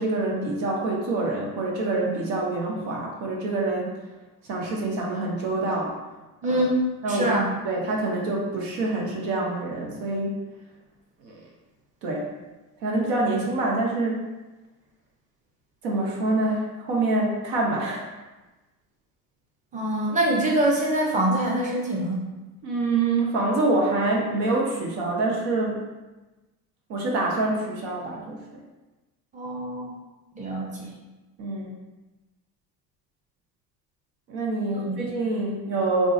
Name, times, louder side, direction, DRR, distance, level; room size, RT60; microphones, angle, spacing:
voice 1, 0.0-4.0 4.5-5.9 7.0-7.3 7.6-10.4 11.2-11.4 12.0-12.3 12.8-14.2 15.8-18.1 22.6-25.9 26.9-28.4 31.4-31.7 34.3-36.1, right 2 dB, 60° right, -2 dB, 1.0 m, -26 dB
voice 2, 6.4-7.5 19.7-22.2 29.3-29.9 30.3-30.9 34.8-35.0, right 1 dB, 15° right, -3 dB, 0.8 m, -24 dB
3.6 x 2.0 x 3.7 m, 1.1 s
hypercardioid pair, 65°, 50 cm